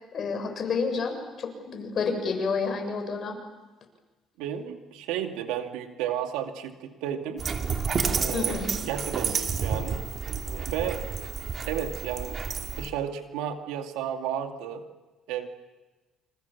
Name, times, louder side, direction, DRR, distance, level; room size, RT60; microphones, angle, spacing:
voice 1, 0.1-3.4 8.3-8.7, left 5 dB, 45° left, 4 dB, 7.1 m, -29 dB
voice 2, 4.4-7.4 8.1-8.6 8.8-10.0 10.5-11.4 11.7-12.4 12.7-14.9 15.3-15.5, right 9 dB, 90° right, 5 dB, 2.4 m, -33 dB
Dog, 7.4-12.9, right 5 dB, 40° right, 2.3 m, -30 dB
29.0 x 27.5 x 7.2 m, 1.2 s
cardioid pair, 105°, 0 cm